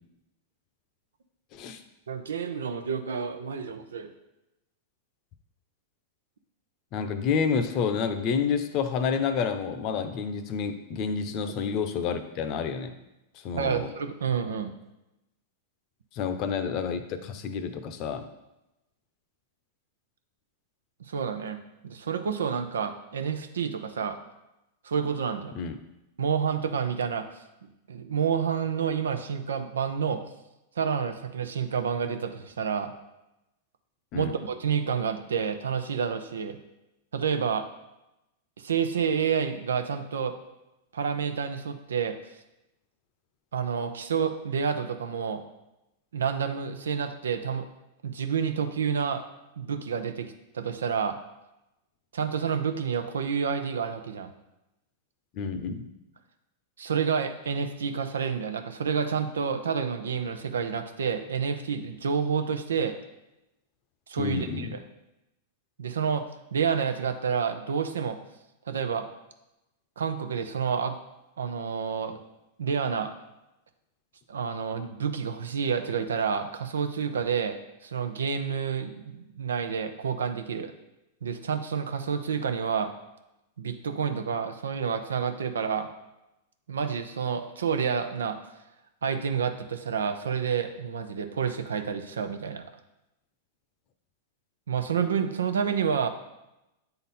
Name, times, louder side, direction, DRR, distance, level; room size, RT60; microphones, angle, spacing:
voice 1, 2.1-4.1 11.5-11.6 13.5-14.7 21.0-21.6 21.8-24.2 24.8-25.5 26.2-27.2 27.9-30.2 30.8-32.9 34.1-36.6 37.1-37.6 38.6-40.3 40.9-42.1 43.5-45.4 46.1-47.7 48.0-49.2 49.6-51.2 52.1-54.3 56.8-63.0 64.1-64.8 65.8-66.3 66.5-68.2 68.7-69.1 70.0-71.0 71.4-72.2 72.6-73.1 74.3-77.6 77.8-80.7 81.2-82.9 83.6-85.9 86.7-88.4 89.0-92.6 94.7-96.1, right 6 dB, 85° right, 7 dB, 0.7 m, -29 dB
voice 2, 6.9-12.9 13.4-13.9 16.1-18.3 25.5-25.8 34.1-34.3 55.3-55.8 64.2-64.7, left 6 dB, 45° left, 9 dB, 0.7 m, -29 dB
8.4 x 3.9 x 4.3 m, 0.93 s
hypercardioid pair, 115°, 0 cm